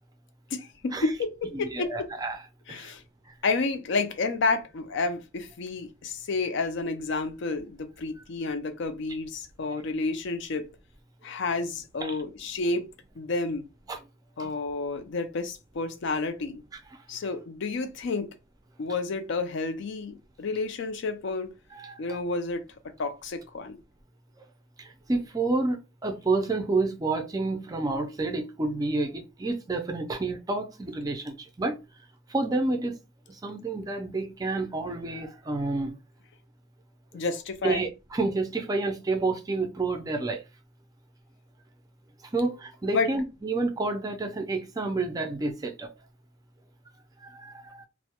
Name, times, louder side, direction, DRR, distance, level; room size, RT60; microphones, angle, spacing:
voice 1, 0.5-1.9 2.7-3.0 3.4-10.7 11.2-12.9 13.2-13.7 14.4-16.6 17.1-18.3 18.8-21.5 22.0-22.6 23.0-23.8 37.1-37.8 42.9-43.1, left 3 dB, 65° left, 0.4 m, -30 dB
voice 2, 1.5-2.4 2.7-2.9 12.0-12.1 13.9-14.0 14.4-14.5 16.7-16.8 21.7-22.0 24.8-31.8 32.3-33.0 33.4-35.9 37.6-40.4 42.3-45.9 47.2-47.8, right 3 dB, 20° right, 0.4 m, -29 dB
2.2 x 2.0 x 2.8 m
head